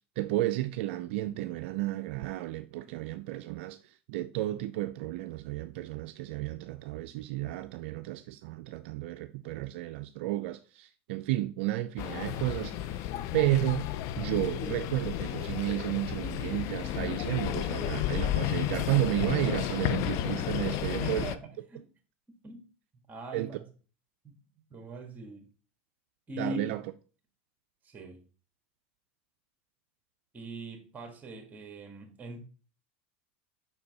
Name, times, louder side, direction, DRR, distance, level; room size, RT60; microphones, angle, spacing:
voice 1, 0.2-13.9 14.2-21.2 23.3-23.5 26.4-26.8, right 16 dB, 70° right, 0.4 m, -32 dB
sound 1, 12.0-21.4, left 12 dB, 55° left, 0.4 m, -32 dB
voice 2, 20.7-21.9 22.4-22.7 22.9-23.6 24.2-24.4 24.7-25.5 26.3-26.7 27.8-28.2 30.3-32.4, right 1 dB, 25° right, 1.6 m, -42 dB
5.4 x 4.4 x 4.0 m
hypercardioid pair, 105°, 6 cm